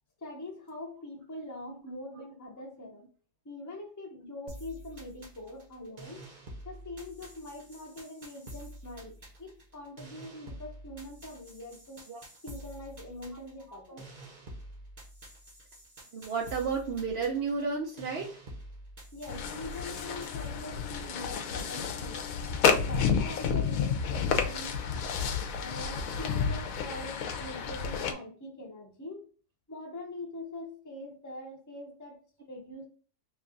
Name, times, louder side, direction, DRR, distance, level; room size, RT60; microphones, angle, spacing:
voice 1, 0.2-3.0 3.4-6.3 6.6-12.0 12.4-14.1 19.1-22.2 22.7-24.8 25.5-29.3 29.7-32.2 32.5-32.8, left 1 dB, 30° left, 0 dB, 0.3 m, -43 dB
sound 1, 4.5-20.5, right 1 dB, 35° right, 0.7 m, -48 dB
voice 2, 16.1-18.3, right 5 dB, 80° right, 0 dB, 0.5 m, -32 dB
sound 2, 19.3-28.1, left 6 dB, 70° left, 0.9 m, -30 dB
3.2 x 2.4 x 3.8 m, 0.39 s
omnidirectional pair, 1.8 m